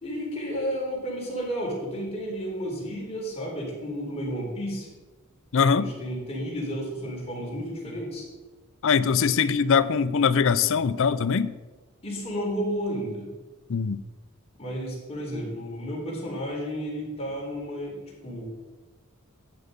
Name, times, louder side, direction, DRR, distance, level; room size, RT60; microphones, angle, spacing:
voice 1, 0.0-4.9 5.7-8.3 12.0-13.3 14.5-18.4, equal, 30° left, -4 dB, 3.8 m, -32 dB
voice 2, 5.5-5.9 8.8-11.5 13.7-14.0, left 6 dB, 65° left, 13 dB, 0.5 m, -22 dB
11.0 x 8.1 x 5.2 m, 1.2 s
head